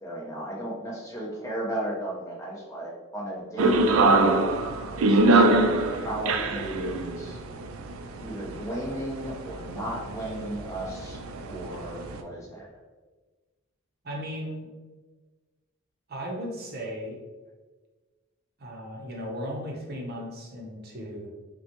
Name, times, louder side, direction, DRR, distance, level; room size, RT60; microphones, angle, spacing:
voice 1, 0.0-4.3 4.9-5.5 6.0-7.4 8.2-11.2 11.5-12.7, right 1 dB, 15° left, -4 dB, 0.9 m, -34 dB
sound 1, 3.6-12.2, right 2 dB, 85° right, 0.4 m, -24 dB
voice 2, 14.0-14.7 16.1-17.2 18.6-21.3, equal, 50° right, -1 dB, 0.8 m, -36 dB
5.7 x 2.3 x 2.9 m, 1.3 s
head